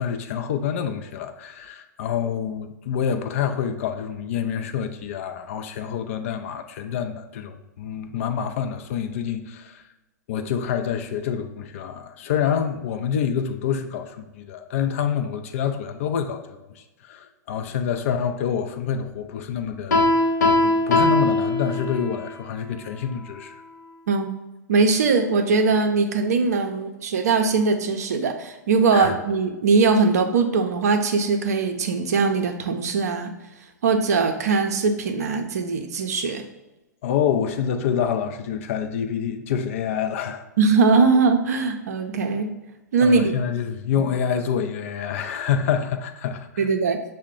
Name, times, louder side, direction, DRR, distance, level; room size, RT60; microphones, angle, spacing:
voice 1, 0.0-9.8 10.3-20.0 20.6-23.6 28.9-29.2 37.0-40.4 43.0-46.7, left 8 dB, 45° left, 7 dB, 0.4 m, -27 dB
Piano, 19.9-22.2, left 2 dB, 60° left, 0.9 m, -20 dB
voice 2, 24.7-33.3 33.8-36.4 40.6-42.5 42.9-43.3 44.0-44.1 46.6-47.0, right 4 dB, 55° right, 6 dB, 0.6 m, -21 dB
6.3 x 2.1 x 3.7 m, 1.0 s
figure-of-eight pair, 110°, 10 cm